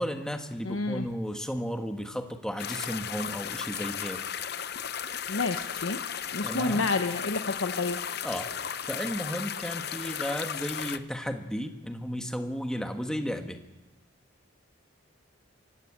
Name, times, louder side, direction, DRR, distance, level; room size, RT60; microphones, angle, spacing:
voice 1, 0.0-4.2 6.4-6.9 8.2-8.5 8.9-13.6, equal, 5° left, 5 dB, 1.4 m, -34 dB
voice 2, 0.6-1.1 5.3-6.0 6.3-8.0, left 3 dB, 85° left, 6 dB, 1.0 m, -29 dB
sound 1, 2.6-11.0, left 8 dB, 55° left, 0.8 m, -35 dB
25.5 x 15.5 x 8.7 m, 1.1 s
head